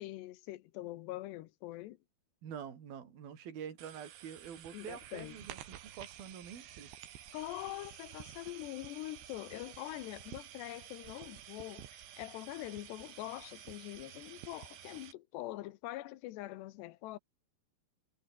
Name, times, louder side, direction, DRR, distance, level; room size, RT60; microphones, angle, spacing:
voice 1, 0.0-2.0 4.7-5.4 7.3-17.2, left 16 dB, 80° left, 3.0 m, -44 dB
voice 2, 2.4-6.9, right 8 dB, 60° right, 5.2 m, -46 dB
sound 1, 3.8-15.1, right 11 dB, 80° right, 4.3 m, -51 dB
omnidirectional pair, 5.0 m